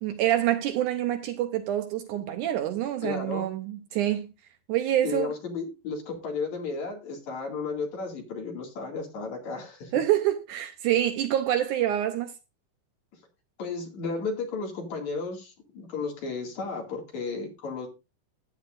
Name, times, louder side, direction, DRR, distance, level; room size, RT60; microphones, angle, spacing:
voice 1, 0.0-4.3 4.7-5.3 9.9-12.3, right 12 dB, 75° right, 2.0 m, -26 dB
voice 2, 3.0-3.5 5.0-9.9 13.6-17.9, left 4 dB, 55° left, 3.3 m, -33 dB
14.0 x 9.9 x 2.5 m
omnidirectional pair, 4.0 m